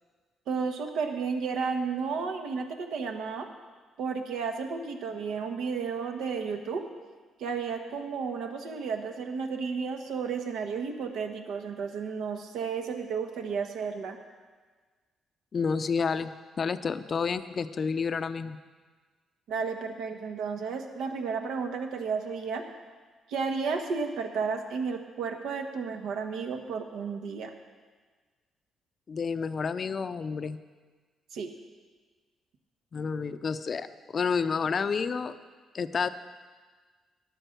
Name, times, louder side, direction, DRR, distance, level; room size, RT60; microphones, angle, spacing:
voice 1, 0.5-3.5 4.0-6.8 7.4-14.2 19.5-22.6 23.3-27.5 31.3-31.5, right 5 dB, 80° right, 4 dB, 1.3 m, -32 dB
voice 2, 15.5-16.3 16.6-18.6 29.1-30.6 32.9-33.9 34.1-35.3 35.7-36.1, left 5 dB, 45° left, 12 dB, 0.5 m, -29 dB
10.5 x 9.1 x 6.6 m, 1.4 s
cardioid pair, 90°, 0 cm